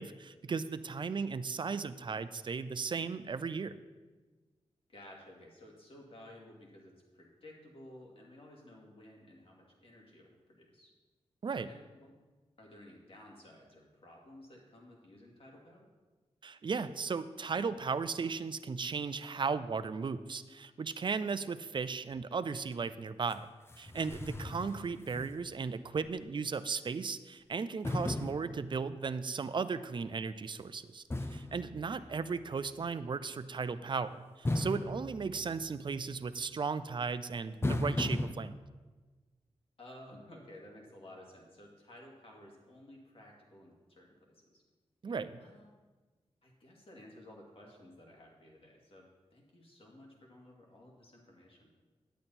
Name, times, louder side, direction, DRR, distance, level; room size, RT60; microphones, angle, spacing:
voice 1, 0.0-3.8 11.4-11.7 16.4-23.4 23.8-31.0 31.3-38.5 45.0-45.4, right 5 dB, 45° right, 13 dB, 0.5 m, -36 dB
voice 2, 4.9-10.9 11.5-12.1 12.6-15.9 31.9-32.3 39.8-44.6 45.4-45.7 46.4-51.7, left 1 dB, 55° left, -1 dB, 2.4 m, -55 dB
sound 1, 23.3-23.4 23.7-25.7 26.1-26.2 27.8-29.2 31.1-32.5 34.5-36.0 37.6-38.3, left 1 dB, 20° left, 0.6 m, -37 dB
10.0 x 8.7 x 4.3 m, 1.3 s
cardioid pair, 70°, 11 cm